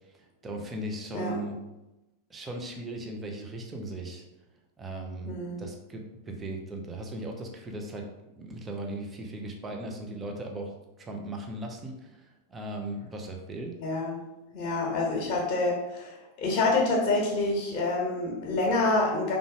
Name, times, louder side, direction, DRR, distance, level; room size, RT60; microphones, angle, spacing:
voice 1, 0.1-1.6 2.3-4.2 4.8-8.1 8.4-10.7 11.0-13.8, right 1 dB, 15° right, 2 dB, 0.9 m, -38 dB
voice 2, 5.2-5.6 13.8-14.2 14.5-19.4, left 2 dB, 40° left, -2 dB, 1.7 m, -27 dB
5.5 x 3.7 x 4.9 m, 0.98 s
figure-of-eight pair, 90°, 0 cm